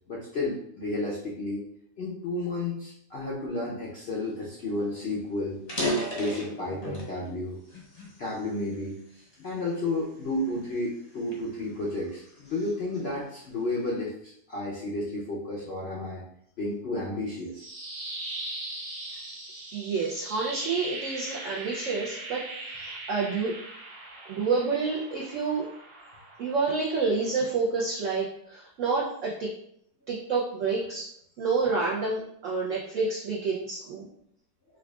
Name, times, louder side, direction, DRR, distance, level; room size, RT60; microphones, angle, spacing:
voice 1, 0.1-1.6 2.0-5.6 6.1-7.6 8.2-16.2 16.6-17.6, left 2 dB, 65° left, -5 dB, 0.6 m, -32 dB
sound 1, 4.5-4.6 4.9-5.0 5.5-7.2 7.7-9.0 9.6-9.8 10.5-12.5, equal, 35° left, 0.7 m, -33 dB
sound 2, 17.3-27.4, right 2 dB, 90° right, 1.6 m, -40 dB
voice 2, 19.7-23.5 24.3-25.7 26.4-29.5 30.1-31.1 31.4-34.0, right 4 dB, 65° right, -4 dB, 0.8 m, -28 dB
4.6 x 2.4 x 2.3 m, 0.69 s
omnidirectional pair, 1.7 m